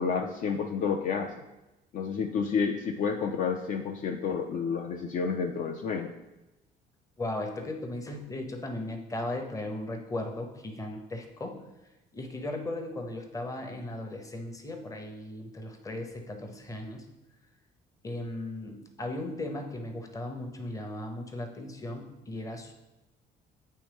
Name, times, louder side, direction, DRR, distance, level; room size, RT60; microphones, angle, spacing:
voice 1, 0.0-1.4 1.9-6.1, left 6 dB, 50° left, 3 dB, 0.4 m, -30 dB
voice 2, 7.2-11.6 12.1-17.0 18.0-22.7, left 1 dB, 20° left, 3 dB, 0.8 m, -37 dB
8.7 x 3.1 x 3.4 m, 1.0 s
cardioid pair, 110°, 17 cm